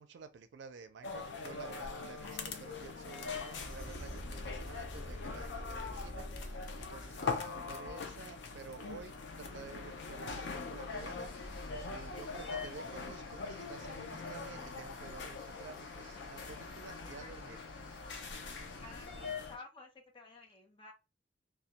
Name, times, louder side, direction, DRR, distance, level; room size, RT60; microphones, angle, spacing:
voice 1, 0.0-9.1 9.4-11.6 11.9-17.6, right 5 dB, 80° right, 0.4 m, -51 dB
sound 1, 1.0-19.6, left 4 dB, 80° left, 0.5 m, -42 dB
sound 2, 1.8-1.9 2.3-2.9 3.2-7.1, equal, 35° right, 1.0 m, -45 dB
voice 2, 7.7-8.0 16.9-17.4 17.8-18.3 18.8-20.9, left 3 dB, 30° left, 0.6 m, -54 dB
sound 3, 10.9-19.4, equal, 50° left, 0.9 m, -57 dB
2.2 x 2.1 x 2.7 m
head